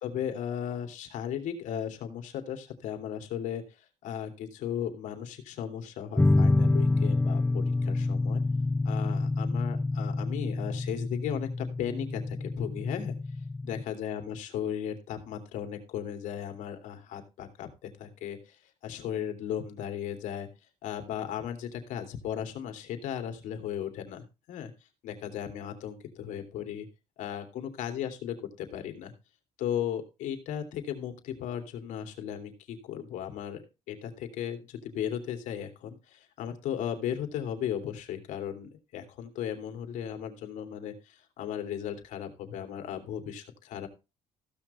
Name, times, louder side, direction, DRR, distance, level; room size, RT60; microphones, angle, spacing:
voice 1, 0.0-3.6 4.0-8.4 8.8-13.1 13.6-18.5 18.8-20.5 20.8-24.7 25.0-26.9 27.2-29.1 29.6-43.9, left 9 dB, 85° left, 5 dB, 2.8 m, -36 dB
sound 1, 6.2-13.8, left 2 dB, 10° left, 0.6 m, -27 dB
15.5 x 6.3 x 4.3 m, 0.28 s
cardioid pair, 95°, 13 cm